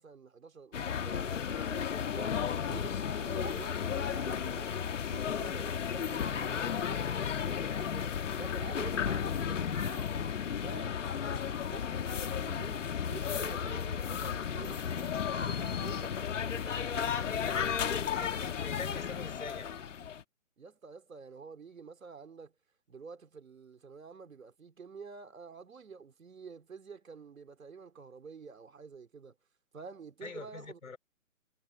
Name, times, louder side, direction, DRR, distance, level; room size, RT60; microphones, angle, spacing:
voice 1, 0.0-4.8 5.1-16.9 20.6-22.5 22.9-29.4 29.7-30.8, right 5 dB, 75° right, 3.6 m, -49 dB
sound 1, 0.7-20.2, left 8 dB, 60° left, 1.7 m, -34 dB
voice 2, 18.2-19.8 30.2-31.0, left 5 dB, 80° left, 4.5 m, -44 dB
hypercardioid pair, 145°, 41 cm